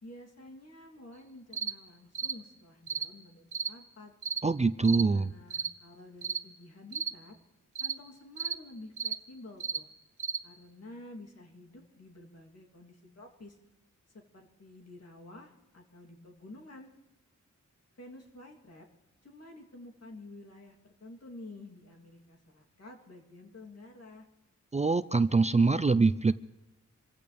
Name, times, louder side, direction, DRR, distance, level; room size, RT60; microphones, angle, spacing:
voice 1, 0.0-4.1 5.0-7.4 7.8-9.9 10.4-13.6 14.1-16.9 18.0-18.9 19.2-24.3, left 2 dB, 55° left, 0 dB, 3.2 m, -50 dB
sound 1, 1.5-1.8 2.2-2.4 2.9-3.1 3.5-3.7 4.2-4.4 4.8-5.1 5.5-5.7 6.2-6.4 6.9-7.1 7.8-8.0 8.4-8.6 9.0-9.2 9.6-9.8 10.2-10.4, right 6 dB, 70° right, 1.1 m, -34 dB
voice 2, 4.4-5.3 24.7-26.3, right 4 dB, 25° right, 13 dB, 0.4 m, -24 dB
26.5 x 15.0 x 3.5 m, 1.0 s
wide cardioid pair, 100°, 30 cm